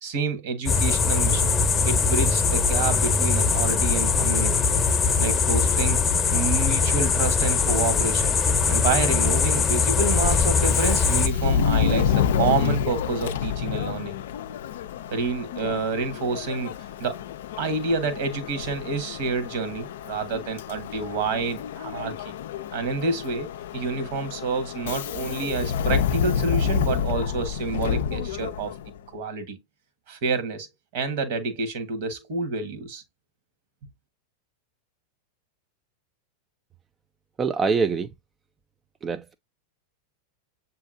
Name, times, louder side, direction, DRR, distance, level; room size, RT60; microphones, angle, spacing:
voice 1, 0.0-1.5 1.8-4.6 5.2-6.0 6.3-8.3 8.7-14.2 15.1-17.2 17.6-22.3 22.7-28.7 29.1-29.6 30.1-30.7 30.9-33.0, right 4 dB, 55° right, 1.2 m, -28 dB
sound 1, 0.7-11.3, left 5 dB, 25° left, 0.8 m, -21 dB
Subway metro underground, 10.6-29.0, left 8 dB, 65° left, 0.4 m, -28 dB
voice 2, 37.4-38.1 39.0-39.3, right 5 dB, 20° right, 0.4 m, -24 dB
7.1 x 2.8 x 2.5 m
figure-of-eight pair, 95°, 0 cm